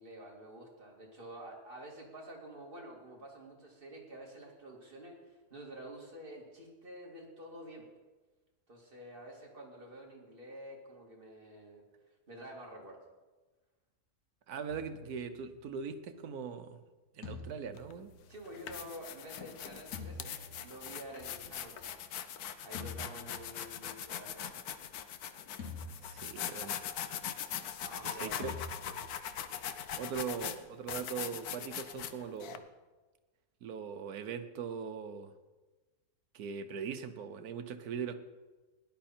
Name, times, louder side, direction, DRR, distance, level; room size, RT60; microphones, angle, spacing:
voice 1, 0.0-7.9 8.7-11.8 12.3-13.0 18.3-22.0 22.6-24.5 27.8-28.5 28.8-29.0, right 1 dB, 35° right, -1 dB, 2.6 m, -49 dB
voice 2, 14.5-16.8 17.1-18.1 26.0-26.8 28.0-28.6 30.0-32.6 33.6-35.3 36.3-38.2, right 6 dB, 85° right, 9 dB, 1.4 m, -40 dB
sound 1, 14.7-16.0 17.2-18.9 19.9-21.3 22.7-24.1 25.6-26.8 28.4-29.8, left 3 dB, 70° left, 2.4 m, -48 dB
sound 2, 17.8-17.9 18.4-32.6, left 9 dB, 85° left, 1.3 m, -41 dB
17.5 x 10.5 x 4.4 m, 1.2 s
omnidirectional pair, 1.6 m